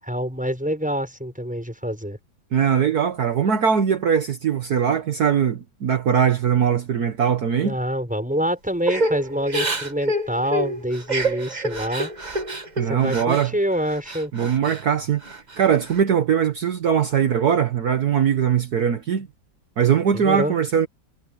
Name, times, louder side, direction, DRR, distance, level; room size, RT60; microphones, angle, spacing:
voice 1, 0.0-2.2 7.6-12.1 12.9-14.3 20.1-20.5, equal, 5° right, 6.5 m, -26 dB
voice 2, 2.5-7.7 12.8-13.5 14.3-19.3 19.8-20.9, right 8 dB, 60° right, 1.7 m, -21 dB
Crying sobbing / Breathing, 8.9-13.5 13.8-14.8 15.2-16.0, right 1 dB, 25° right, 1.6 m, -27 dB
omnidirectional pair, 2.0 m